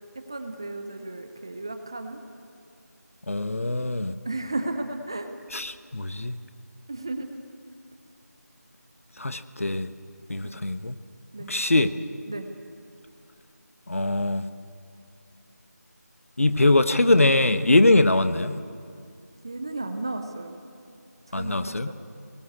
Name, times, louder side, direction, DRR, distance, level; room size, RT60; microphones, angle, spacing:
voice 1, 0.3-2.2 4.2-5.3 6.9-7.4 10.4-10.5 11.3-11.5 12.3-12.5 19.4-20.6 21.3-21.9, right 2 dB, 15° right, 8 dB, 0.6 m, -34 dB
voice 2, 3.3-4.1 5.5-6.4 9.2-9.9 10.3-10.9 11.5-11.9 13.9-14.5 16.4-18.6 21.3-21.9, left 2 dB, 50° left, 11 dB, 1.1 m, -22 dB
24.5 x 20.0 x 8.4 m, 2.3 s
figure-of-eight pair, 170°, 9 cm